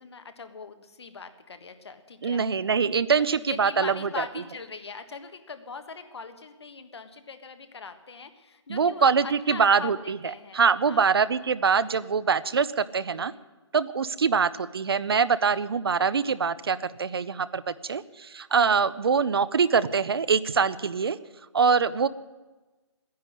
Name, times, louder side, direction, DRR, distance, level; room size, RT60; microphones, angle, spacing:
voice 1, 0.0-2.4 3.3-11.1 13.1-13.5, left 5 dB, 60° left, 9 dB, 1.5 m, -41 dB
voice 2, 2.2-4.2 8.7-10.2 10.5-13.3 13.7-21.2 21.5-22.1, right 5 dB, 55° right, 17 dB, 0.6 m, -24 dB
13.5 x 10.5 x 9.9 m, 1.2 s
hypercardioid pair, 170°, 15 cm